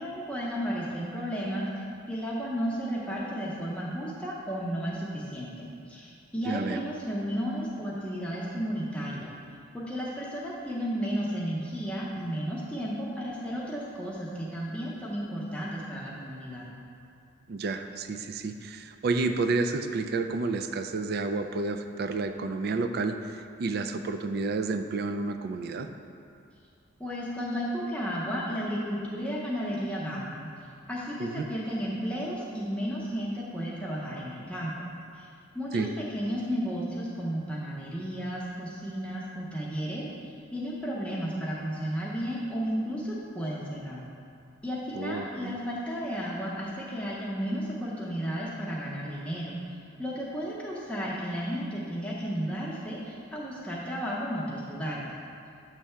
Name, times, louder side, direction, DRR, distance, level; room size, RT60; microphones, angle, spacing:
voice 1, 0.0-9.3 9.7-16.7 27.0-30.5 30.9-34.8 35.1-35.3 35.5-40.0 40.5-44.1 44.6-49.6 50.0-55.1, equal, 5° left, -5 dB, 0.7 m, -33 dB
voice 2, 6.4-6.8 17.5-25.9 31.2-31.4 35.7-35.9 44.9-45.6, right 3 dB, 50° right, 7 dB, 0.3 m, -30 dB
7.3 x 3.3 x 5.6 m, 2.5 s
head